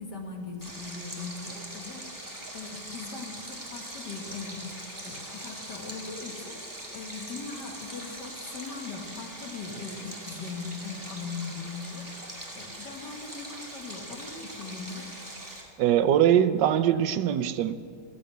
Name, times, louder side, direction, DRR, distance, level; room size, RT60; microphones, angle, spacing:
voice 1, 0.0-6.6 6.9-12.1 12.5-15.1, left 4 dB, 65° left, 2 dB, 2.4 m, -40 dB
Stream, 0.6-15.6, right 1 dB, 10° right, 2.2 m, -42 dB
voice 2, 15.8-17.7, right 10 dB, 75° right, 12 dB, 1.3 m, -22 dB
14.5 x 11.0 x 8.1 m, 2.2 s
omnidirectional pair, 1.9 m